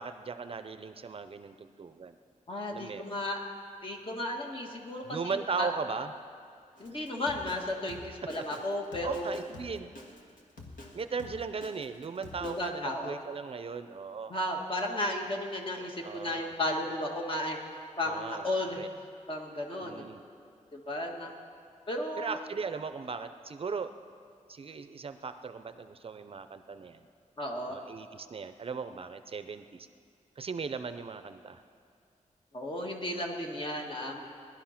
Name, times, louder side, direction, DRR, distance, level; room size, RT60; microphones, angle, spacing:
voice 1, 0.0-2.2 2.7-3.1 5.0-6.1 9.0-9.9 10.9-14.3 16.0-16.5 18.0-18.9 19.8-20.2 22.2-23.9 24.5-27.0 27.7-29.9 30.4-31.6, right 5 dB, 45° right, 10 dB, 0.5 m, -38 dB
voice 2, 2.5-3.4 3.8-5.7 6.8-9.3 12.4-13.2 14.3-17.6 18.0-18.9 19.3-20.1 20.7-21.3 21.9-22.4 27.4-27.8 32.5-34.2, left 1 dB, 40° left, 0 dB, 1.8 m, -34 dB
Drum kit, 6.8-12.7, left 2 dB, 85° left, 1.9 m, -48 dB
19.0 x 11.5 x 5.8 m, 2.3 s
wide cardioid pair, 160°, 13 cm